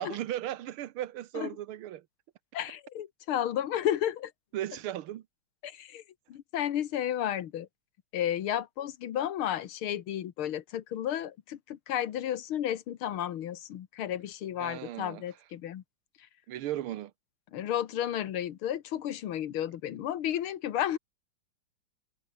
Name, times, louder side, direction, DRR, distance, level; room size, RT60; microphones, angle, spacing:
voice 1, 0.0-2.0 4.5-5.2 14.6-15.2 16.5-17.1, right 13 dB, 85° right, 1.8 m, -36 dB
voice 2, 2.5-4.3 5.6-6.0 6.3-7.7 8.1-15.8 17.5-21.0, left 11 dB, 85° left, 2.0 m, -32 dB
omnidirectional pair, 2.3 m